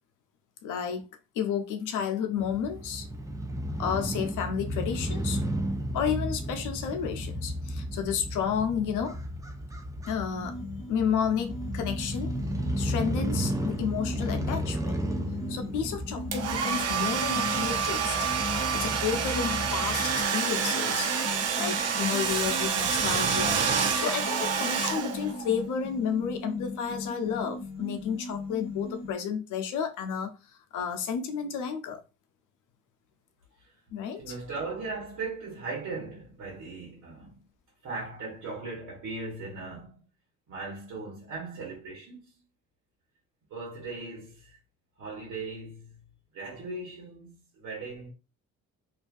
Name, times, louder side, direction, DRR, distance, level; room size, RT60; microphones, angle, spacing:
voice 1, 0.6-1.1 1.3-3.1 3.8-5.4 5.9-9.2 10.1-10.6 10.9-12.3 12.8-15.1 15.5-18.2 18.7-21.1 21.6-30.4 30.7-32.0 33.9-34.4, left 7 dB, 85° left, 0.6 m, -31 dB
Crow / Motorcycle, 2.4-20.2, equal, 10° right, 0.6 m, -34 dB
sound 1, 10.3-29.1, left 2 dB, 20° left, 0.8 m, -39 dB
Domestic sounds home sounds, 16.3-25.5, right 6 dB, 55° right, 0.6 m, -28 dB
voice 2, 34.2-37.4 37.8-40.0 40.5-42.2 43.5-44.6 45.0-48.1, right 3 dB, 75° right, 1.2 m, -38 dB
2.6 x 2.3 x 2.5 m
cardioid pair, 90°, 30 cm